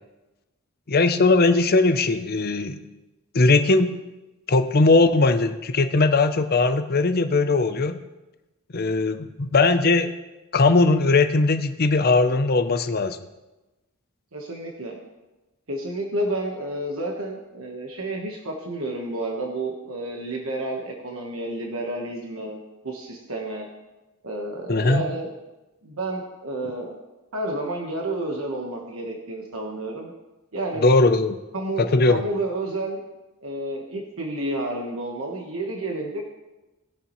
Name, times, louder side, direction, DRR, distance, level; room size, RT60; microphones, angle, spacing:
voice 1, 0.9-2.8 3.3-4.0 4.5-8.0 8.7-10.1 10.5-13.2 24.7-25.0 30.8-31.4 31.9-32.2, left 3 dB, 45° left, 10 dB, 0.7 m, -19 dB
voice 2, 14.3-15.0 15.7-22.6 22.8-23.7 24.2-25.3 25.8-27.0 27.3-30.1 30.5-30.8 31.5-33.0 33.4-36.3, right 1 dB, 65° right, 0 dB, 1.3 m, -30 dB
19.5 x 6.9 x 3.1 m, 1.1 s
head